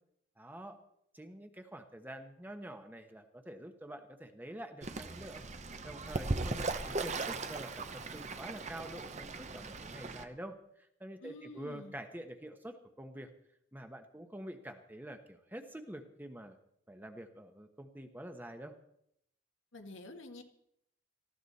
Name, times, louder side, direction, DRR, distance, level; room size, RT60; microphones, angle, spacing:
voice 1, 0.4-0.8 1.1-5.4 5.8-13.3 13.7-16.6 16.9-18.7, right 1 dB, 10° right, 6 dB, 1.1 m, -47 dB
Fowl / Bird, 4.8-10.2, right 3 dB, 35° right, 0.9 m, -38 dB
voice 2, 11.2-11.9 19.7-20.4, left 1 dB, 75° left, 4 dB, 1.8 m, -48 dB
19.0 x 15.0 x 4.2 m, 0.73 s
head